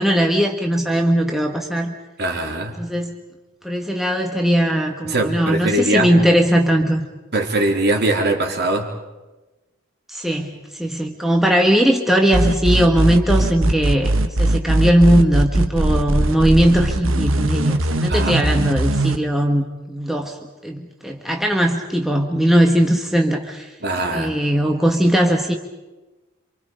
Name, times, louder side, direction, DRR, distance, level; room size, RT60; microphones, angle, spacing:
voice 1, 0.0-1.9 2.8-3.2 3.6-7.0 10.1-10.5 10.7-20.4 20.6-23.7 24.1-25.5, equal, ahead, 1 dB, 1.6 m, -19 dB
voice 2, 2.2-2.8 5.0-6.2 7.3-8.9 18.1-18.5 23.8-24.4, right 1 dB, 55° right, 2 dB, 3.5 m, -21 dB
sound 1, 12.3-19.2, right 1 dB, 80° right, 1.3 m, -19 dB
28.0 x 26.5 x 5.2 m, 1.1 s
head